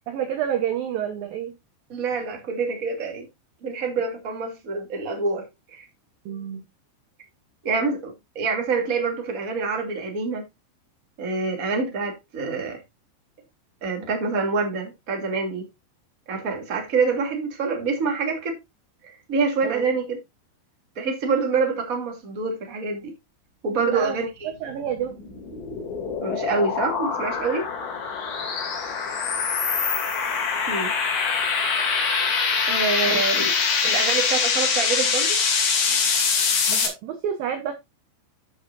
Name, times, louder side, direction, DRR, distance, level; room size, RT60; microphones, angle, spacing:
voice 1, 0.1-1.5 6.3-6.6 19.6-19.9 23.8-24.2 24.6-25.1 33.1-33.2 36.7-37.7, right 9 dB, 80° right, 2.1 m, -29 dB
voice 2, 1.9-3.3 3.6-5.8 7.6-10.4 11.2-12.8 13.8-15.7 16.3-18.6 19.0-20.2 21.0-23.1 23.6-24.5 26.2-27.7 30.7-30.9 32.6-33.5 33.8-35.4, right 4 dB, 30° right, 1.8 m, -26 dB
sound 1, 24.9-36.9, left 5 dB, 65° left, 4.8 m, -24 dB
13.5 x 6.4 x 2.6 m
omnidirectional pair, 5.7 m